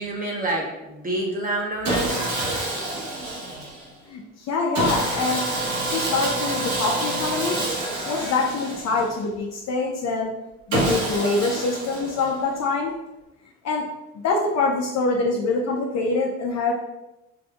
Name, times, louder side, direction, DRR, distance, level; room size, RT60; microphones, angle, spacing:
voice 1, 0.0-2.2, right 1 dB, 30° right, -2 dB, 1.1 m, -27 dB
Sawing, 1.8-3.9 4.7-9.3 10.7-12.5, right 2 dB, 70° right, 1.3 m, -27 dB
voice 2, 4.1-5.4 5.9-7.6 8.0-10.3 10.7-12.9 13.6-13.8 14.2-16.7, left 3 dB, 60° left, -1 dB, 0.6 m, -24 dB
5.9 x 2.6 x 2.3 m, 0.97 s
cardioid pair, 90°, 30 cm